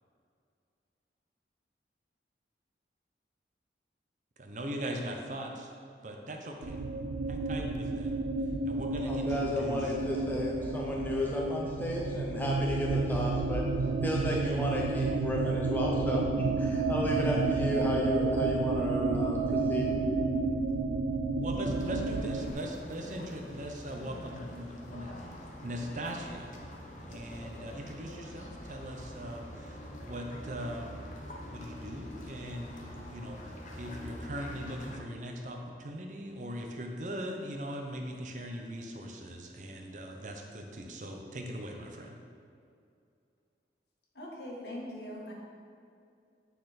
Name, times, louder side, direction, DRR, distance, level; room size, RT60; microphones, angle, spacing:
voice 1, 4.4-5.7 6.0-6.8 7.3-8.2 8.7-10.0 18.4-18.5 21.4-26.5 27.1-31.1 31.4-42.2, equal, 45° right, 2 dB, 0.6 m, -40 dB
sound 1, 6.6-22.5, right 3 dB, 90° right, 0.4 m, -31 dB
voice 2, 9.0-13.6 14.0-19.9, left 1 dB, 10° left, -3 dB, 0.6 m, -33 dB
sound 2, 21.6-35.0, equal, 45° left, 0.8 m, -45 dB
voice 3, 44.1-45.3, left 1 dB, 70° left, -3 dB, 1.5 m, -41 dB
9.1 x 4.2 x 4.1 m, 2.4 s
head